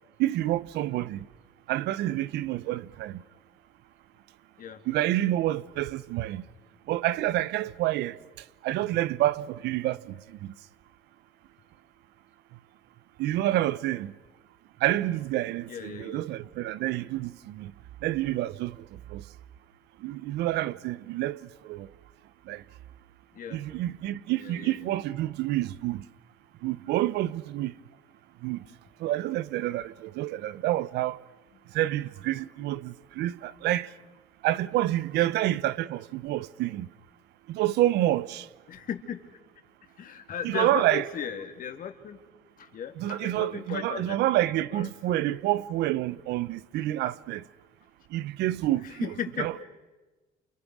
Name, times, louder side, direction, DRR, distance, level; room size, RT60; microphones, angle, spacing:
voice 1, 0.2-1.3 1.7-3.2 4.9-6.4 6.9-8.2 8.6-10.5 13.2-14.1 14.8-17.7 18.0-19.2 20.0-21.9 22.5-22.6 23.5-26.0 26.6-27.7 28.4-28.6 29.0-31.2 31.7-33.9 34.4-36.9 37.5-38.5 40.4-41.0 43.0-47.4 48.1-49.6, right 14 dB, 80° right, 0.9 m, -28 dB
voice 2, 15.7-16.2 23.3-23.6 24.4-24.8 28.6-28.7 38.7-39.2 40.0-42.2 42.6-44.2 44.5-44.9 49.0-49.6, left 8 dB, 55° left, 2.6 m, -36 dB
29.5 x 28.5 x 6.3 m
cardioid pair, 110°, 17 cm